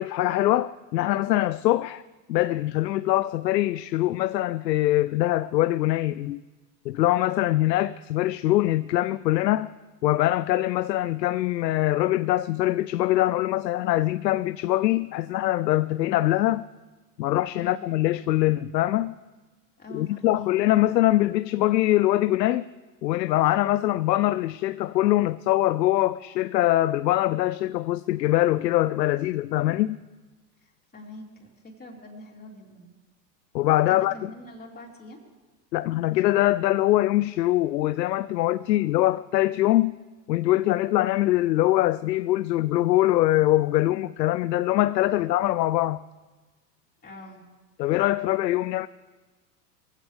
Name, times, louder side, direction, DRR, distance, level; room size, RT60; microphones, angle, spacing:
voice 1, 0.0-2.0 2.3-6.4 6.9-9.7 10.0-16.6 17.2-19.2 19.9-22.7 23.0-30.0 33.5-34.1 35.7-40.0 40.3-46.0 47.8-48.9, left 15 dB, 80° left, 0.6 m, -23 dB
voice 2, 17.6-17.9 19.8-20.5 30.6-32.9 33.9-35.2 38.6-38.8 45.1-45.3 47.0-47.4, left 1 dB, 20° left, 3.9 m, -44 dB
23.5 x 15.5 x 3.5 m
hypercardioid pair, 95°, 49 cm